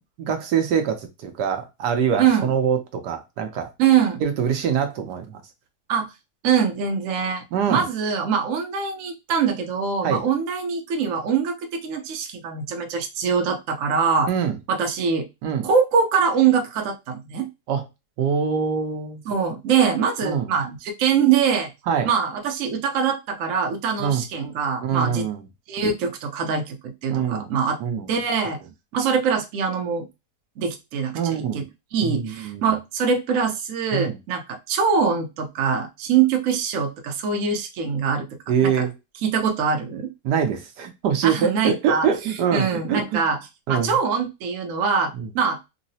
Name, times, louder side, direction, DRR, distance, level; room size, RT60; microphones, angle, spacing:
voice 1, 0.2-3.7 4.2-5.4 7.5-7.9 10.0-10.2 14.3-14.6 15.4-15.7 17.7-17.8 18.2-19.2 20.2-20.5 21.9-22.1 24.0-24.2 24.8-25.4 27.1-27.5 27.8-28.1 31.1-31.6 32.0-32.7 33.9-34.2 38.5-38.9 40.2-43.2 43.7-43.9 45.1-45.3, right 7 dB, 80° right, 1.3 m, -24 dB
voice 2, 2.2-2.5 3.8-4.2 5.9-6.1 6.4-14.3 14.7-15.3 15.6-17.5 19.3-21.7 22.0-25.3 25.7-26.8 27.0-27.8 28.1-28.6 28.9-30.1 30.6-31.6 31.9-38.3 38.6-38.8 39.2-40.1 41.2-42.1 42.5-43.4 43.7-45.6, right 6 dB, 60° right, 0.9 m, -23 dB
3.8 x 2.0 x 2.6 m
omnidirectional pair, 1.8 m